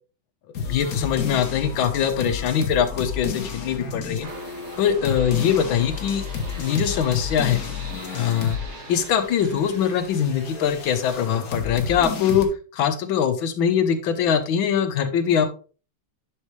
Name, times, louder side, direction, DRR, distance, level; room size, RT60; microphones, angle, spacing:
sound 1, 0.5-8.7 9.0-12.5, left 5 dB, 50° left, 1.4 m, -32 dB
voice 1, 0.7-4.3 4.8-6.2 6.6-7.7 8.1-8.6 8.9-12.5 12.7-15.5, left 8 dB, 80° left, 8 dB, 1.7 m, -22 dB
sound 2, 4.2-12.3, right 2 dB, 35° right, 1.9 m, -42 dB
10.5 x 4.5 x 3.2 m, 0.36 s
omnidirectional pair, 2.2 m